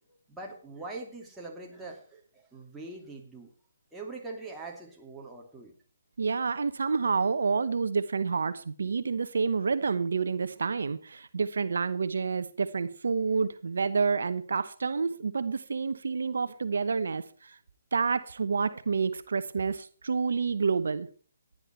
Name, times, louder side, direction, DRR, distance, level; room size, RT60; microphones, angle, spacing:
voice 1, 0.0-3.5 3.9-5.7, right 3 dB, 5° right, 2.7 m, -43 dB
voice 2, 6.2-17.6 17.9-21.1, right 5 dB, 70° right, 0.9 m, -29 dB
16.0 x 10.5 x 4.5 m
figure-of-eight pair, 145°, 0 cm